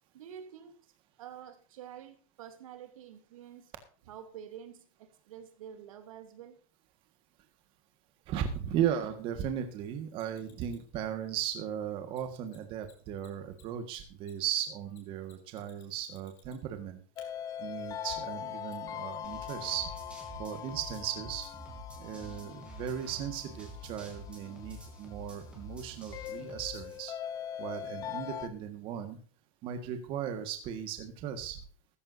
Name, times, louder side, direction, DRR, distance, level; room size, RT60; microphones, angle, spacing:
voice 1, 0.1-0.8 1.2-3.7 4.0-6.6, right 9 dB, 80° right, 8 dB, 2.8 m, -48 dB
voice 2, 8.3-17.0 17.6-19.9 20.4-21.5 22.0-27.1 27.6-29.2 29.6-31.6, right 9 dB, 30° right, 7 dB, 1.6 m, -36 dB
Mechanisms, 10.1-10.9 12.1-12.2 12.5-12.6 12.8-12.9 13.2-16.8 17.2-17.3 18.7-18.8, left 12 dB, 40° left, 4.1 m, -61 dB
sound 1, 17.2-28.5, left 10 dB, 20° left, 0.8 m, -42 dB
sound 2, 19.2-27.0, equal, 5° right, 3.3 m, -48 dB
14.5 x 14.5 x 2.7 m, 0.42 s
supercardioid pair, 170°, 17 cm